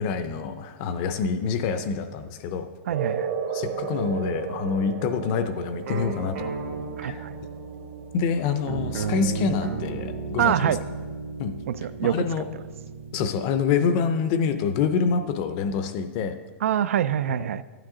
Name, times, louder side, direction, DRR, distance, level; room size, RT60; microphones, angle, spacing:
voice 1, 0.0-2.7 3.5-6.5 7.0-7.3 8.1-10.7 11.4-11.5 12.0-12.5 13.1-16.4 17.4-17.5, left 6 dB, 30° left, 10 dB, 0.5 m, -26 dB
sound 1, 2.9-9.9, right 7 dB, 50° right, 0.9 m, -34 dB
voice 2, 2.9-3.3 7.0-7.3 10.4-10.8 11.7-12.2 16.6-17.6, right 10 dB, 85° right, 15 dB, 0.4 m, -25 dB
sound 2, 5.9-13.3, right 4 dB, 70° right, 1.2 m, -34 dB
12.0 x 9.0 x 3.7 m, 1.5 s
supercardioid pair, 175°, 7 cm